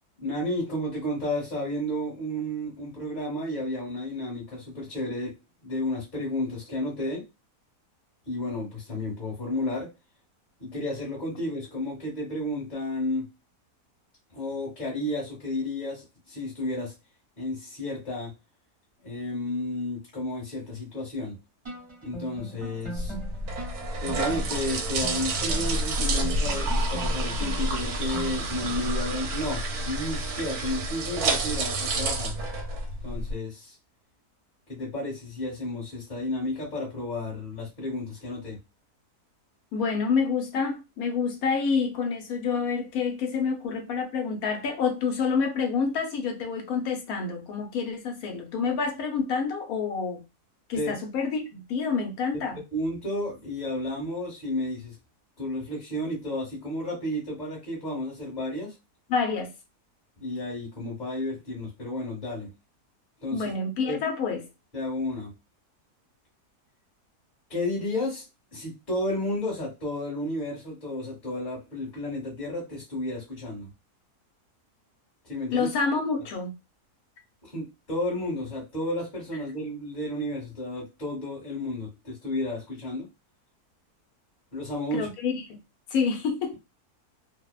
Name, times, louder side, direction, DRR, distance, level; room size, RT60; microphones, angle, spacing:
voice 1, 0.2-5.3 5.6-7.2 8.3-9.9 10.6-13.3 14.3-16.9 17.4-18.3 19.0-21.4 22.0-23.1 24.0-32.3 33.0-33.8 34.7-38.6 50.7-50.9 52.5-54.9 55.4-58.8 60.2-62.5 63.2-63.5 63.8-64.0 64.7-65.3 67.5-68.2 68.5-73.7 75.3-75.7 77.4-83.1 84.5-85.1, left 1 dB, 35° left, 1.1 m, -32 dB
sound 1, 21.6-29.3, right 2 dB, 25° right, 0.7 m, -42 dB
sound 2, 23.0-33.3, right 2 dB, 80° right, 1.1 m, -29 dB
voice 2, 39.7-50.2 50.7-52.6 59.1-59.5 63.3-64.4 75.5-76.5 84.9-85.6 85.9-86.5, left 5 dB, 70° left, 1.1 m, -28 dB
2.8 x 2.0 x 2.3 m
omnidirectional pair, 1.6 m